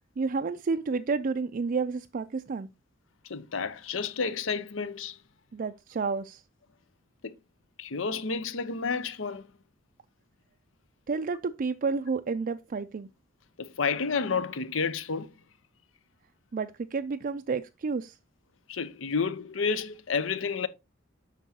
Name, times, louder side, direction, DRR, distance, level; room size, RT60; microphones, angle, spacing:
voice 1, 0.2-2.7 5.5-6.4 11.1-13.1 16.5-18.2, right 4 dB, 45° right, 0.4 m, -30 dB
voice 2, 3.2-5.2 7.2-7.4 7.8-9.5 13.6-15.3 18.7-20.7, left 5 dB, 80° left, 0.7 m, -30 dB
9.1 x 6.1 x 2.8 m
head